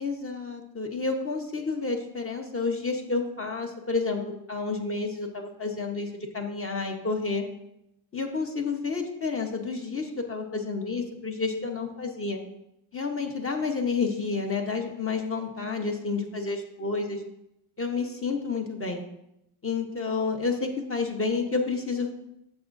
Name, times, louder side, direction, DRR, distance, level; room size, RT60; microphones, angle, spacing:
voice 1, 0.0-7.4 8.1-12.4 12.9-17.2 17.8-19.0 19.6-22.2, left 4 dB, 35° left, 2 dB, 0.9 m, -30 dB
11.0 x 7.2 x 2.6 m, 0.83 s
wide cardioid pair, 160°, 40 cm